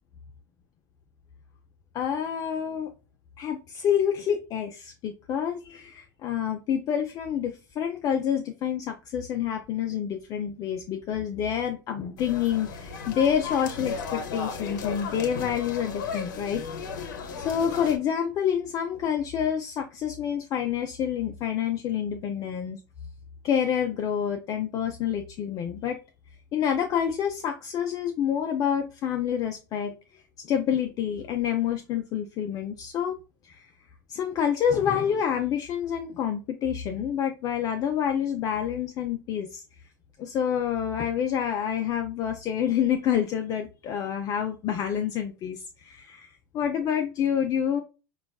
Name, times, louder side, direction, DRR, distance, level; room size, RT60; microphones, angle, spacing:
voice 1, 1.9-2.9 3.4-16.6 17.4-22.8 23.4-26.0 26.5-29.9 30.4-33.2 33.4-33.6 34.1-39.6 40.2-46.3 46.5-47.8, left 8 dB, 35° left, 4 dB, 0.4 m, -28 dB
sound 1, 12.2-18.0, left 5 dB, 75° left, 0.7 m, -35 dB
4.0 x 2.3 x 2.2 m, 0.31 s
hypercardioid pair, 100°, 10 cm